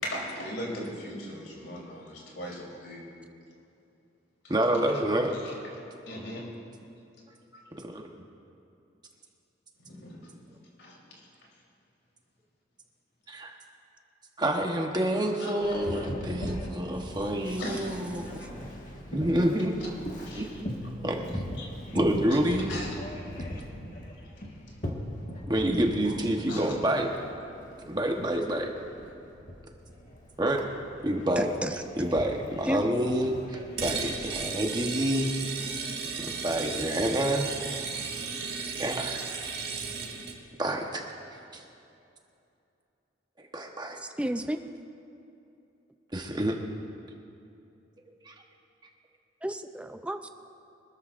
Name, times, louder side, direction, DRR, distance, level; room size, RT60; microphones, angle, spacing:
voice 1, 0.0-3.0 5.4-5.5 6.1-6.5 9.9-10.3 10.8-11.0 15.4-15.5 16.4-16.5 17.6-18.0 18.2-18.5 20.2-20.6 21.6-21.7 22.7-23.0 24.4-24.5 26.5-26.7, left 1 dB, 85° left, -3 dB, 3.7 m, -38 dB
voice 2, 4.5-5.3 7.8-8.1 13.3-13.6 14.4-18.2 19.1-19.8 20.4-20.5 21.0-21.2 21.9-22.7 25.5-27.1 27.9-28.7 30.4-30.6 31.0-31.5 32.0-35.3 36.2-37.5 38.8-39.2 40.6-41.0 41.5-41.6 43.5-44.0 46.1-46.6 48.3-48.4, right 1 dB, 20° right, 1 dB, 1.1 m, -28 dB
Boat Water vehicle, 15.6-34.6, equal, 45° left, 1.7 m, -40 dB
voice 3, 31.4-32.0 32.7-33.0 35.3-35.5 44.0-44.6 49.4-50.3, right 1 dB, 5° right, 8 dB, 0.5 m, -32 dB
sound 1, 33.8-40.4, right 5 dB, 60° right, 1.9 m, -34 dB
24.5 x 13.5 x 2.6 m, 2.7 s
head